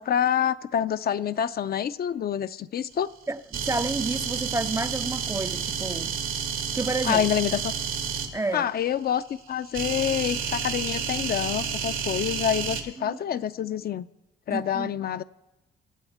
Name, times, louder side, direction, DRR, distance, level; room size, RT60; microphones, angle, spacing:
voice 1, 0.0-3.1 7.0-7.7 8.5-14.1 14.5-15.2, left 9 dB, 50° left, 0.5 m, -27 dB
voice 2, 3.3-6.2 6.7-7.2 8.3-8.7 13.0-13.2 14.5-14.9, right 3 dB, 15° right, 0.4 m, -30 dB
sound 1, 3.5-8.3 9.7-12.8, right 7 dB, 85° right, 2.0 m, -30 dB
24.0 x 9.1 x 4.3 m
cardioid pair, 90°, 20 cm